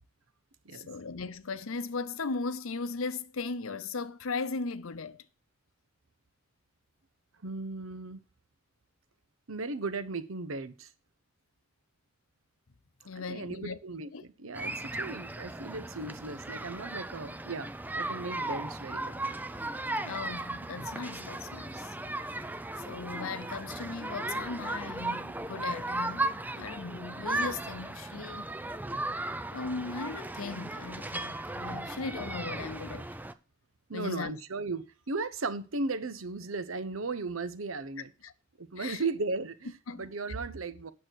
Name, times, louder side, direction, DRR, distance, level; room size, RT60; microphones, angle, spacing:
voice 1, 0.7-5.2 13.0-13.8 14.1-14.2 20.0-22.0 22.9-28.4 29.5-33.1 33.9-34.3 38.2-38.3 38.8-39.0 39.9-40.1, left 4 dB, 80° left, 0.7 m, -37 dB
voice 2, 7.4-8.2 9.5-10.9 13.1-19.3 33.9-38.1 38.6-40.9, right 3 dB, 75° right, 0.9 m, -36 dB
sound 1, 14.5-33.3, right 2 dB, 10° right, 0.5 m, -36 dB
9.1 x 6.6 x 6.3 m
head